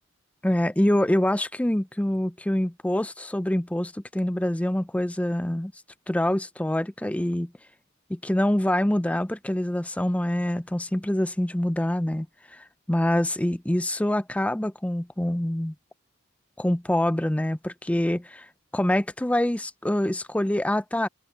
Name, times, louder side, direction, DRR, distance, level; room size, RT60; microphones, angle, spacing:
voice 1, 0.4-5.7 6.1-7.5 8.1-12.3 12.5-15.7 16.6-18.5 18.7-21.1, left 1 dB, 5° left, 0.5 m, -25 dB
head